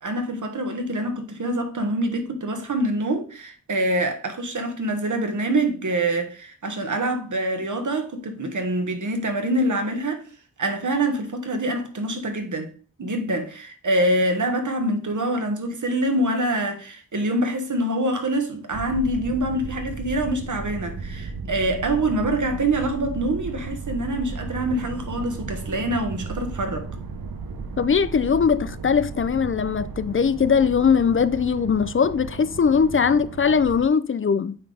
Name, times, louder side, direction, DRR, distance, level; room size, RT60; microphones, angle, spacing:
voice 1, 0.0-10.3 10.6-12.7 13.0-26.9, right 1 dB, 60° right, 1.3 m, -25 dB
sound 1, 18.7-33.9, right 4 dB, 85° right, 0.9 m, -35 dB
voice 2, 27.8-34.6, left 6 dB, 40° left, 0.4 m, -20 dB
9.1 x 3.9 x 3.3 m
wide cardioid pair, 80°, 34 cm